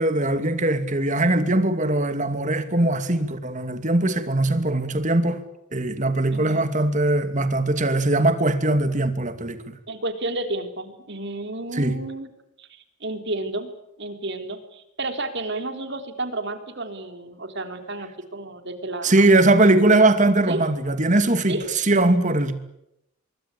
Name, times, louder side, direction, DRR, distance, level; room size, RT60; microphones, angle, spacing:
voice 1, 0.0-5.4 5.7-9.6 11.7-11.9 19.0-22.5, right 2 dB, 35° right, 2.6 m, -20 dB
voice 2, 6.3-6.7 9.9-12.3 12.6-13.7 14.0-19.3 20.5-20.6 21.5-21.6, right 2 dB, 55° right, 3.7 m, -31 dB
25.5 x 23.0 x 8.5 m
head